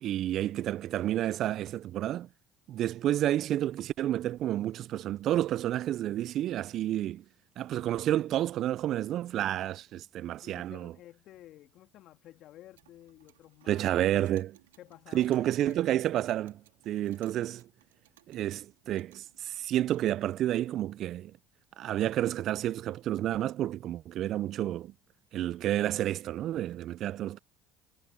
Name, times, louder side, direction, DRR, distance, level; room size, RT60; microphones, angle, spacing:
voice 1, 0.0-2.3 2.7-7.2 7.6-10.9 13.7-14.5 15.1-16.6 16.9-17.6 18.3-21.3 21.8-24.9 25.3-27.4, right 12 dB, 55° right, 0.4 m, -30 dB
voice 2, 10.4-14.2 14.8-15.9, left 14 dB, 60° left, 2.2 m, -53 dB
Clock, 12.5-20.3, right 15 dB, 85° right, 2.1 m, -63 dB
hypercardioid pair, 65°, 0 cm